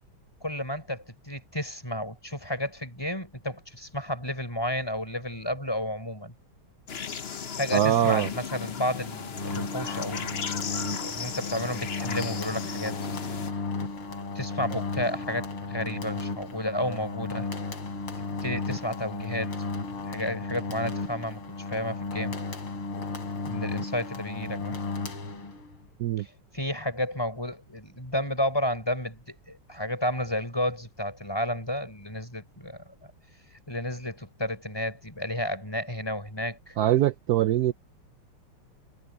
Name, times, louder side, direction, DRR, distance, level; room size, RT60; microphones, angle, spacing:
voice 1, 0.4-6.3 7.6-10.5 11.0-13.0 14.3-17.5 18.4-19.5 20.1-21.4 21.7-22.4 23.4-24.8 26.2-32.8 33.7-36.8, left 1 dB, 10° left, 5.5 m, -32 dB
sound 1, 6.9-13.5, left 7 dB, 50° left, 0.8 m, -36 dB
voice 2, 7.7-8.3 26.0-26.2 36.8-37.7, right 12 dB, 80° right, 0.8 m, -23 dB
sound 2, 9.3-25.8, left 3 dB, 85° left, 5.1 m, -34 dB
omnidirectional pair, 2.3 m